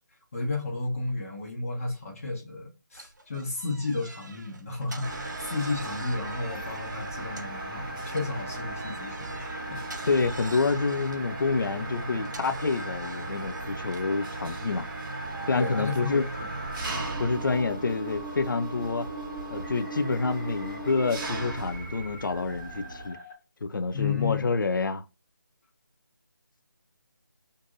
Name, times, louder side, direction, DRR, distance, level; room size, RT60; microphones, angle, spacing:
voice 1, 0.3-9.8 15.5-16.8 23.9-24.5, left 3 dB, 45° left, 1.1 m, -33 dB
sound 1, 2.9-7.7 8.1-14.2, right 3 dB, 60° right, 0.6 m, -46 dB
Mechanisms, 5.0-23.1, right 2 dB, 5° right, 0.4 m, -36 dB
voice 2, 10.1-14.9 15.5-16.3 17.2-19.1 19.5-23.2 23.6-25.0, left 4 dB, 75° left, 0.4 m, -28 dB
sound 2, 15.1-23.3, right 3 dB, 15° left, 1.0 m, -45 dB
2.6 x 2.6 x 3.5 m
figure-of-eight pair, 160°, 11 cm